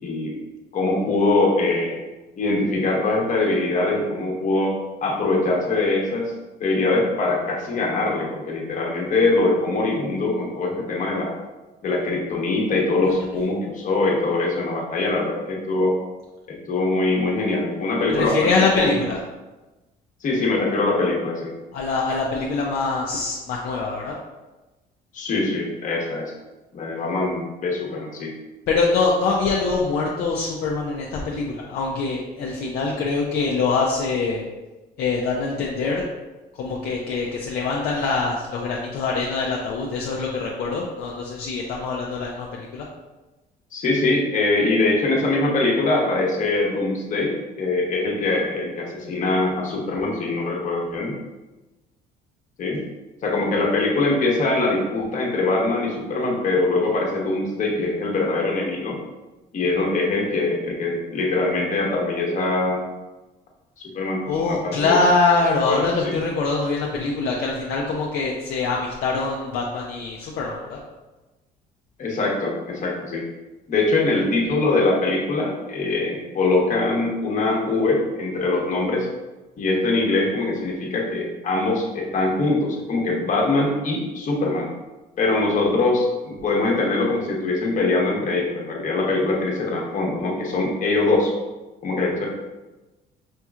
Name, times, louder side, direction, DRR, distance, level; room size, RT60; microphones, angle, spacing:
voice 1, 0.0-0.4 0.7-2.0 2.4-4.7 5.0-6.3 6.6-11.3 11.8-16.0 16.5-19.0 20.2-21.5 25.1-26.3 26.7-28.3 43.7-51.1 52.6-52.8 53.2-59.0 59.5-62.8 63.8-65.0 65.7-66.1 72.0-73.3 73.7-79.1 79.6-84.7 85.2-91.3 91.8-92.3, left 2 dB, 50° left, -1 dB, 1.0 m, -23 dB
voice 2, 18.1-19.2 21.7-24.1 28.7-34.4 35.0-36.0 36.6-42.9 64.3-70.8, left 4 dB, 65° left, -3 dB, 0.6 m, -24 dB
5.3 x 2.9 x 2.4 m, 1.1 s
cardioid pair, 110°, 17 cm